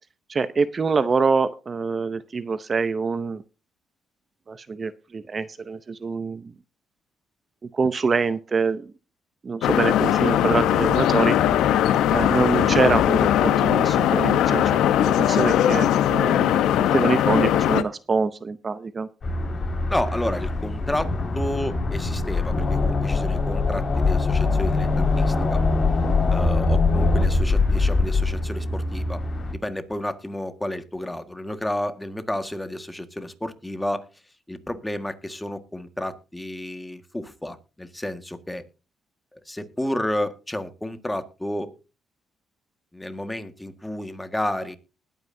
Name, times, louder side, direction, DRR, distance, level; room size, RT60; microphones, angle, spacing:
voice 1, 0.3-3.4 4.5-6.5 7.7-8.9 9.4-11.4 12.1-19.1, right 4 dB, 35° right, 14 dB, 0.7 m, -25 dB
sound 1, 9.6-17.8, left 11 dB, 85° left, 0.9 m, -20 dB
sound 2, 19.2-29.5, left 3 dB, 40° left, 5.2 m, -23 dB
voice 2, 19.9-25.6 26.3-29.2 29.5-34.1 34.5-38.6 39.3-41.7 42.9-44.8, left 1 dB, 10° left, 9 dB, 1.7 m, -31 dB
20.0 x 9.2 x 2.7 m, 0.31 s
cardioid pair, 90°, 0 cm